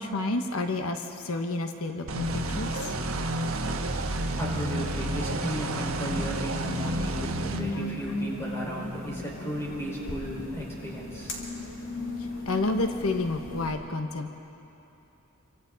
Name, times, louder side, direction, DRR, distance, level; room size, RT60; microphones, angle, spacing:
voice 1, 0.0-3.3 7.7-7.8 11.1-11.2 12.2-14.3, left 2 dB, 90° left, 5 dB, 1.2 m, -30 dB
sound 1, 2.1-7.6, right 2 dB, 75° right, 1.4 m, -30 dB
sound 2, 2.2-13.7, left 1 dB, 65° left, 3.8 m, -37 dB
voice 2, 4.4-11.4, equal, 15° left, -4 dB, 5.0 m, -35 dB
28.5 x 25.0 x 4.1 m, 3.0 s
head